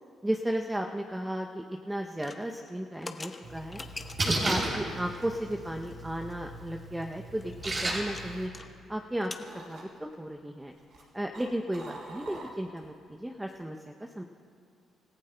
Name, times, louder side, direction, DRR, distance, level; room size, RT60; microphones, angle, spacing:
voice 1, 0.2-3.8 4.2-8.5 8.9-10.7 11.1-14.2, right 1 dB, 10° right, 3 dB, 0.6 m, -34 dB
sound 1, 2.1-4.5 5.1-5.5 5.8-5.9 6.2-6.3 6.7-8.7 8.9-9.5, left 3 dB, 25° left, 0.8 m, -44 dB
Splash splatter, 3.4-8.5, right 2 dB, 40° right, 2.9 m, -34 dB
sound 2, 7.3-9.1 9.4-10.1 10.7-13.0 13.3-13.6, right 2 dB, 65° right, 3.0 m, -47 dB
26.5 x 15.0 x 2.2 m, 2.4 s
cardioid pair, 90°, 0 cm